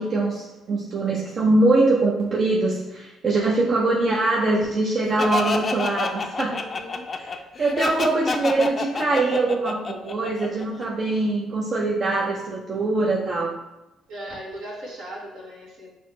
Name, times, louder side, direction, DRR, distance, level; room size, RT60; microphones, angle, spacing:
voice 1, 0.0-6.6 7.6-13.5, right 2 dB, 50° right, -3 dB, 0.6 m, -22 dB
Laughter, 5.2-10.8, left 4 dB, 45° left, 0.4 m, -28 dB
voice 2, 6.5-7.4 14.1-15.9, right 1 dB, 75° right, -4 dB, 1.2 m, -38 dB
6.1 x 2.1 x 3.1 m, 0.97 s
hypercardioid pair, 55°, 0 cm